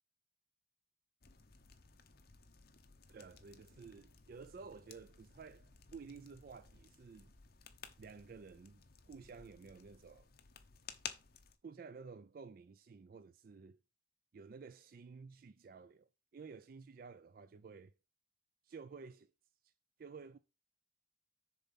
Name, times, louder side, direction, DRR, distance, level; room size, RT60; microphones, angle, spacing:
sound 1, 1.2-11.6, left 8 dB, 55° left, 0.9 m, -55 dB
voice 1, 3.1-7.3 8.0-8.8 9.1-10.3 11.6-13.8 14.3-17.9 18.6-19.3 19.6-19.7 20.0-20.4, right 5 dB, 55° right, 0.4 m, -53 dB
6.9 x 4.3 x 5.6 m
head